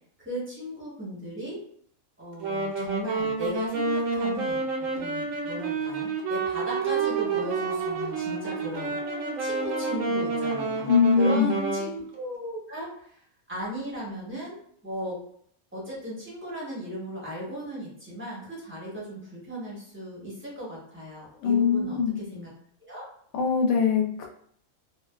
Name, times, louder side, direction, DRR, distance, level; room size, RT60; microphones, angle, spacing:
voice 1, 0.2-1.6 2.2-4.7 4.9-9.0 9.4-13.2 13.5-14.6 14.8-15.2 15.7-22.5 22.8-23.1, equal, 10° right, -7 dB, 0.7 m, -36 dB
Wind instrument woodwind instrument, 2.4-11.9, right 4 dB, 75° right, 0.9 m, -29 dB
sound 1, 6.8-11.1, right 3 dB, 50° right, 0.6 m, -39 dB
voice 2, 10.9-11.6 21.4-22.2 23.3-24.3, left 6 dB, 80° left, 2 dB, 1.0 m, -22 dB
2.5 x 2.2 x 2.2 m, 0.63 s
omnidirectional pair, 1.4 m